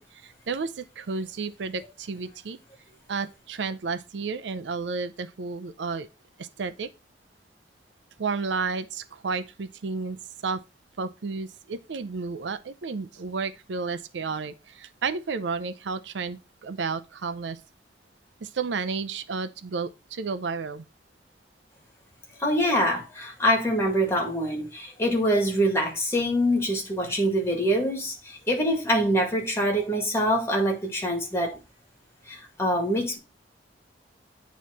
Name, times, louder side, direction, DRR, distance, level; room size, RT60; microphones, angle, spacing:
voice 1, 0.0-2.6 3.1-6.1 6.4-6.9 8.2-10.6 11.0-17.6 18.4-20.9, right 4 dB, 80° right, 0.5 m, -32 dB
voice 2, 22.4-31.6 32.3-33.2, equal, 15° left, 1.7 m, -25 dB
9.2 x 3.1 x 4.1 m
head